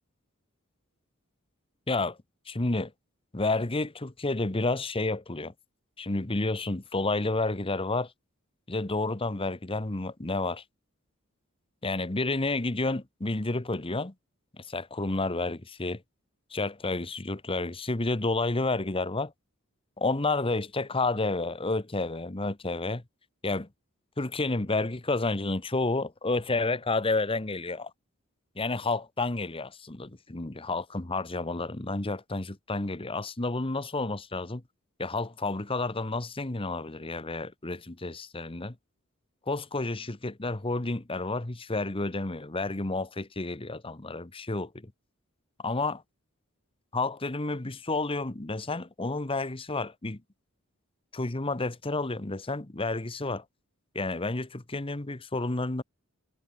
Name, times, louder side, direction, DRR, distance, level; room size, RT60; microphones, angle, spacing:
voice 1, 1.9-2.2 2.5-2.9 3.3-5.5 6.0-8.1 8.7-10.6 11.8-14.1 14.6-16.0 16.5-19.3 20.0-23.0 23.4-23.7 24.2-27.9 28.5-34.6 35.0-38.7 39.5-44.9 45.6-46.0 46.9-50.2 51.1-53.4 53.9-55.8, left 2 dB, 25° left, 1.1 m, -30 dB
head